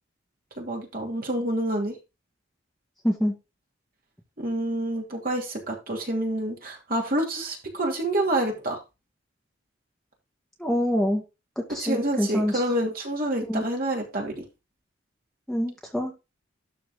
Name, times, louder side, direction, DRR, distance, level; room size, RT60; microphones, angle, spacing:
voice 1, 0.6-2.0 4.4-8.8 11.8-14.4, right 1 dB, 45° right, 2.8 m, -28 dB
voice 2, 3.0-3.3 10.6-11.2 11.6-12.6 13.5-13.7 15.5-16.1, equal, ahead, 2.0 m, -26 dB
12.5 x 4.7 x 3.8 m
head